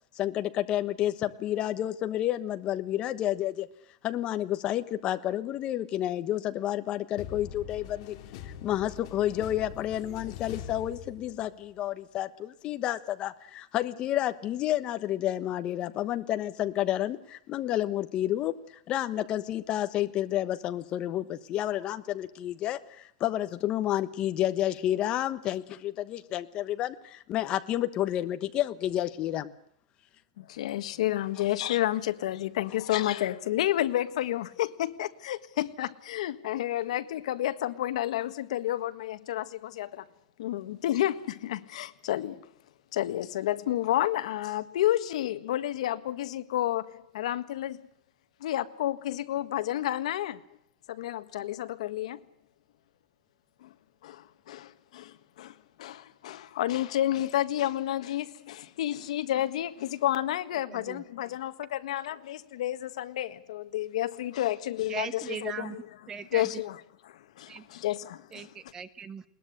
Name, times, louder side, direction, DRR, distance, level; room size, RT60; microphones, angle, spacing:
voice 1, 0.2-3.7 4.0-8.2 8.4-29.5 33.0-33.1, left 12 dB, 25° left, 1.2 m, -30 dB
sound 1, 7.2-11.6, left 8 dB, 50° left, 2.2 m, -43 dB
voice 2, 30.4-40.0 40.4-42.5 42.9-47.8 48.4-50.4 50.9-52.2 53.6-53.7 54.0-65.8 66.3-66.8 67.1-68.5, left 13 dB, 70° left, 1.6 m, -30 dB
voice 3, 60.7-61.0 64.9-66.6 67.5-67.7 68.3-69.2, right 6 dB, 15° right, 1.1 m, -39 dB
21.0 x 20.0 x 8.0 m
supercardioid pair, 170°, 4 cm